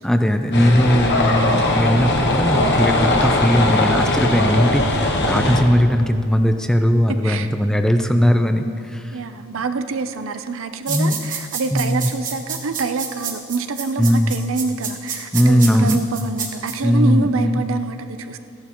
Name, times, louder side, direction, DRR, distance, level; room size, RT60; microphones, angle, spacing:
voice 1, 0.0-9.2 10.9-11.2 11.7-12.1 14.0-14.3 15.3-16.0 16.8-17.6, equal, 5° left, 7 dB, 0.4 m, -18 dB
sound 1, 0.5-5.6, left 2 dB, 55° left, 1.1 m, -19 dB
voice 2, 9.1-18.4, right 4 dB, 70° right, 9 dB, 0.6 m, -26 dB
sound 2, 10.9-16.7, right 7 dB, 40° right, 1.3 m, -28 dB
15.0 x 11.0 x 3.0 m, 2.3 s
head